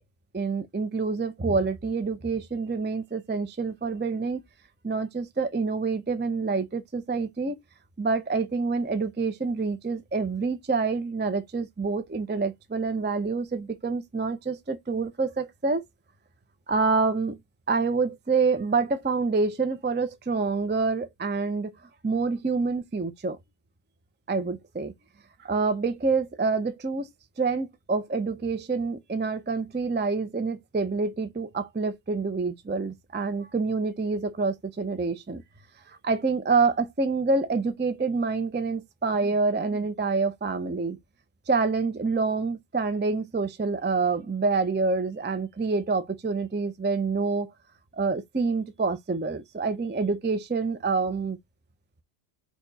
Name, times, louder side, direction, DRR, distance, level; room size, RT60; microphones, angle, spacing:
voice 1, 0.3-4.4 4.8-7.6 8.0-15.8 16.7-17.4 17.7-21.7 22.0-23.4 24.3-24.9 25.4-27.1 27.4-35.4 36.0-41.0 41.5-47.5 47.9-51.4, right 4 dB, 15° right, 0.4 m, -27 dB
4.3 x 2.9 x 4.0 m
omnidirectional pair, 1.1 m